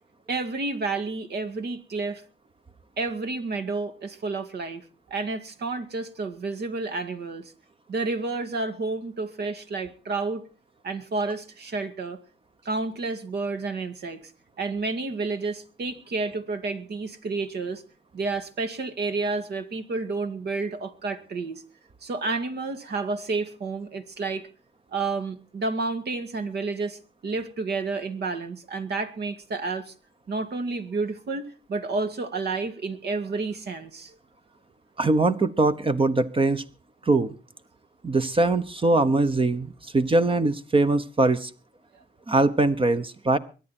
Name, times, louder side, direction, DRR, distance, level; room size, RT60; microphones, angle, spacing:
voice 1, 0.3-2.2 3.0-4.8 5.1-7.5 7.9-10.4 10.8-12.2 12.6-14.2 14.6-17.8 18.1-21.6 22.0-24.5 24.9-29.9 30.3-34.2, right 3 dB, 55° right, 2.2 m, -30 dB
voice 2, 35.0-36.6 37.0-37.3 38.0-41.5 42.3-43.4, right 2 dB, 25° right, 1.1 m, -22 dB
23.0 x 10.0 x 4.4 m
cardioid pair, 90°, 20 cm